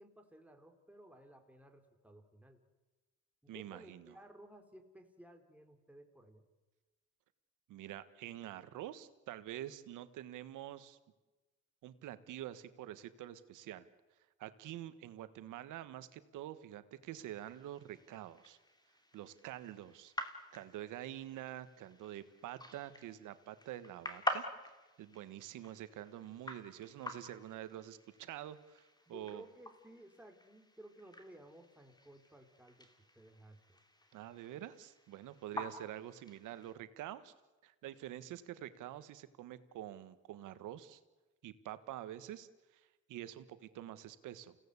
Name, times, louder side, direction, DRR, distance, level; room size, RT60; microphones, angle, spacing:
voice 1, 0.0-2.6 3.4-6.5 29.1-33.8 35.5-35.8, right 1 dB, 5° right, 4 dB, 3.7 m, -57 dB
voice 2, 3.5-4.1 7.7-11.0 11.8-13.9 14.4-18.6 19.1-20.1 20.5-24.5 25.0-29.4 34.1-37.3 37.6-41.0 41.4-44.5, right 12 dB, 90° right, 13 dB, 1.5 m, -47 dB
sound 1, 17.2-36.7, left 1 dB, 15° left, 2.8 m, -47 dB
29.0 x 17.0 x 8.3 m, 1.2 s
cardioid pair, 90°, 30 cm